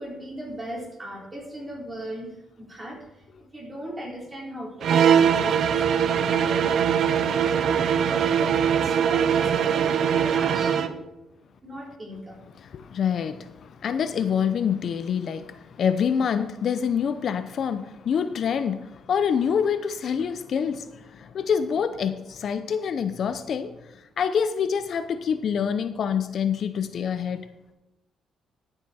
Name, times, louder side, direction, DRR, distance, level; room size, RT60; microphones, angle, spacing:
voice 1, 0.0-3.0 3.5-6.9 7.3-10.9 11.6-12.5, right 1 dB, 20° right, -1 dB, 3.7 m, -38 dB
sound 1, 4.8-11.0, right 8 dB, 65° right, 0.7 m, -21 dB
voice 2, 12.6-27.5, left 7 dB, 60° left, 11 dB, 0.7 m, -26 dB
12.0 x 7.8 x 4.3 m, 0.93 s
cardioid pair, 90°, 0 cm